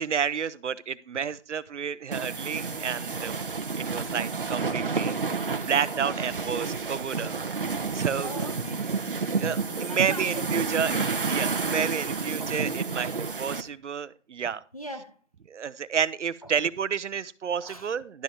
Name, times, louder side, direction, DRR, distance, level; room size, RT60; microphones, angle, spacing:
voice 1, 0.0-3.4 3.8-5.2 5.5-8.3 9.4-10.9 11.3-14.6 15.5-18.2, right 7 dB, 80° right, 0.6 m, -30 dB
sound 1, 2.1-13.6, right 4 dB, 50° right, 0.8 m, -30 dB
sound 2, 6.6-10.5, right 3 dB, 15° right, 1.2 m, -48 dB
voice 2, 8.2-8.9 9.9-11.1 14.7-15.2 16.4-16.6 17.6-17.9, equal, 30° left, 0.6 m, -40 dB
11.5 x 5.7 x 4.3 m
hypercardioid pair, 180°, 35 cm